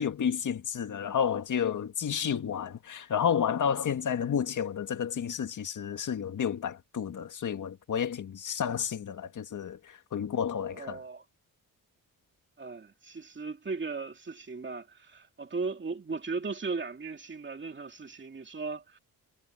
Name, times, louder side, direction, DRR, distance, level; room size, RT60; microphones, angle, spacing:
voice 1, 0.0-11.0, left 8 dB, 55° left, 1.9 m, -31 dB
voice 2, 10.7-11.2 12.6-19.0, right 4 dB, 30° right, 2.6 m, -37 dB
cardioid pair, 125°, 37 cm